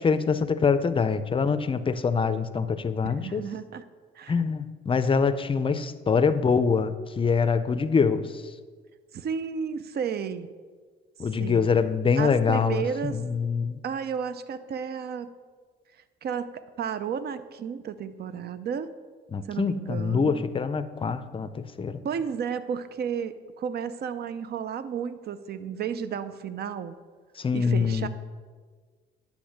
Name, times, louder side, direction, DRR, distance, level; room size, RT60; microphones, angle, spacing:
voice 1, 0.0-3.4 4.3-8.2 11.2-12.8 13.1-13.8 19.3-21.9 27.4-28.1, left 5 dB, 25° left, 12 dB, 0.5 m, -24 dB
voice 2, 3.0-3.8 4.2-4.4 9.1-10.5 11.4-11.7 12.2-13.2 13.8-15.3 16.2-16.5 16.8-18.9 19.5-20.4 22.0-27.0 27.5-28.1, right 7 dB, 55° right, 13 dB, 0.5 m, -32 dB
9.8 x 3.5 x 6.3 m, 1.5 s
cardioid pair, 90°, 20 cm